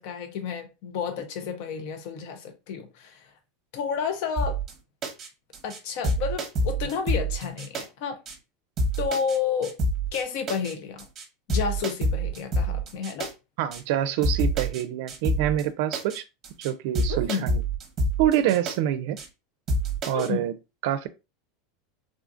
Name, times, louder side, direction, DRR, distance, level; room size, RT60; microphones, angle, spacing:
voice 1, 0.0-3.3 3.7-4.6 5.6-8.2 9.0-9.7 10.1-11.1 11.5-13.3 17.1-17.5 20.1-20.5, left 6 dB, 60° left, 0.6 m, -31 dB
sound 1, 4.4-4.7 5.0-5.3 5.5-5.8 6.0-7.8 8.3-8.4 8.8-9.4 9.6-10.2 10.5-10.7 11.0-11.2 11.5-13.3 13.7-13.8 14.2-14.8 15.1-15.6 15.9-16.2 16.4-16.7 17.0-18.8 19.2-19.3 19.7-20.3, right 1 dB, 25° right, 1.0 m, -27 dB
voice 2, 13.6-16.2 16.6-17.6 18.2-19.2 20.1-20.5 20.8-21.1, right 11 dB, 65° right, 0.4 m, -26 dB
3.7 x 2.4 x 2.4 m
supercardioid pair, 145°, 0 cm